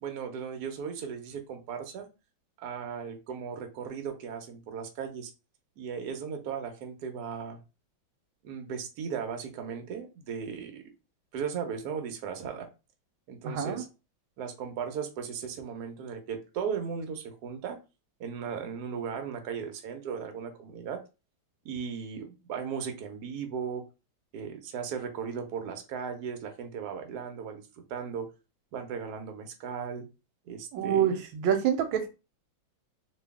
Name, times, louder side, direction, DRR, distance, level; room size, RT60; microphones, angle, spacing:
voice 1, 0.0-2.1 2.6-5.3 5.8-7.6 8.4-10.8 11.3-12.7 13.3-13.9 14.4-17.8 18.2-21.0 21.6-23.8 24.3-27.6 27.9-28.3 28.7-30.1 30.5-31.1, right 7 dB, 60° right, 1.2 m, -36 dB
voice 2, 13.4-13.8 30.7-32.1, right 9 dB, 90° right, 1.5 m, -27 dB
3.0 x 2.7 x 3.4 m
omnidirectional pair, 2.2 m